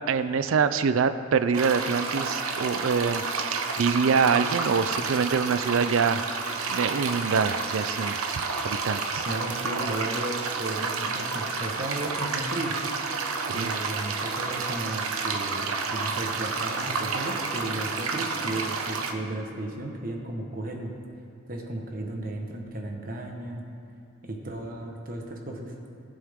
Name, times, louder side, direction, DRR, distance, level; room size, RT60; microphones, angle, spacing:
voice 1, 0.1-6.3 6.7-8.2 8.6-9.2 13.5-13.7, right 5 dB, 70° right, 12 dB, 0.4 m, -25 dB
sound 1, 1.5-19.1, right 4 dB, 90° right, 1.0 m, -30 dB
voice 2, 9.3-12.8 13.5-20.9 21.5-23.6 24.2-25.7, right 1 dB, 40° right, 1 dB, 1.2 m, -34 dB
19.5 x 7.7 x 3.6 m, 2.7 s
head